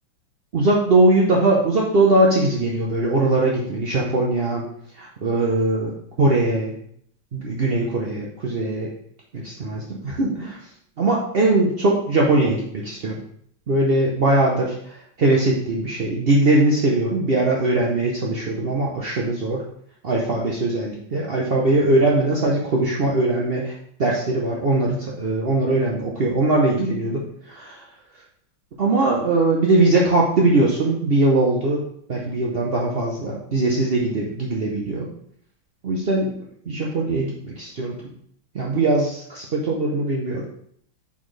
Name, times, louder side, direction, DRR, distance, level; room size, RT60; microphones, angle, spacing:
voice 1, 0.5-4.7 4.9-6.7 7.3-8.9 9.3-10.6 11.0-13.1 13.7-19.6 20.0-23.7 24.0-27.8 28.8-31.8 32.1-35.1 35.8-36.3 36.7-38.0 38.5-40.4, right 2 dB, 60° right, -3 dB, 0.6 m, -21 dB
7.0 x 4.3 x 3.2 m, 0.65 s
omnidirectional pair, 2.2 m